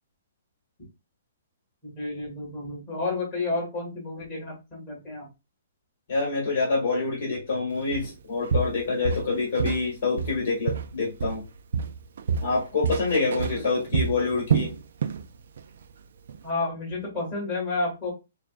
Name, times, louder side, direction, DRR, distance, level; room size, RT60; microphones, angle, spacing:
voice 1, 1.8-5.3 13.5-13.6 16.4-18.1, left 3 dB, 10° left, 2.3 m, -31 dB
voice 2, 6.1-11.4 12.4-14.7, left 3 dB, 40° left, 2.2 m, -26 dB
Walk footsteps, 7.9-8.1 8.5-9.9 10.2-11.5 11.7-15.3 15.6-15.8 16.3-16.4, right 6 dB, 55° right, 0.4 m, -28 dB
6.6 x 2.5 x 2.5 m
hypercardioid pair, 180°, 0 cm